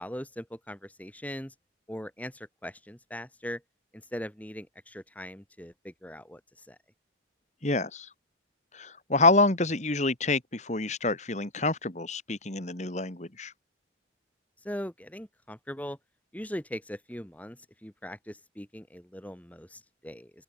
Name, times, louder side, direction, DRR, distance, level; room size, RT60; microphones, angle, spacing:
voice 1, 0.0-1.5 1.9-3.6 4.1-6.4 6.7-6.8 14.6-16.0 16.3-20.3, equal, 10° left, 1.9 m, -40 dB
voice 2, 7.6-8.1 8.7-13.5, left 3 dB, 35° left, 2.0 m, -27 dB
open air
head